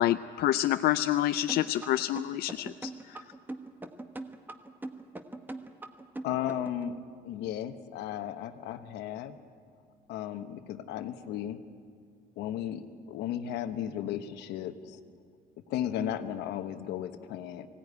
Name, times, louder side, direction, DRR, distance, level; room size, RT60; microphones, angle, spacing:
voice 1, 0.0-3.2, left 13 dB, 65° left, 10 dB, 0.5 m, -28 dB
sound 1, 1.5-6.8, right 2 dB, 10° right, 1.2 m, -40 dB
voice 2, 6.2-7.0 7.2-9.4 10.1-11.6 12.4-15.0 15.7-17.7, left 10 dB, 85° left, 9 dB, 1.1 m, -35 dB
20.0 x 16.5 x 9.6 m, 2.1 s
cardioid pair, 110°, 17 cm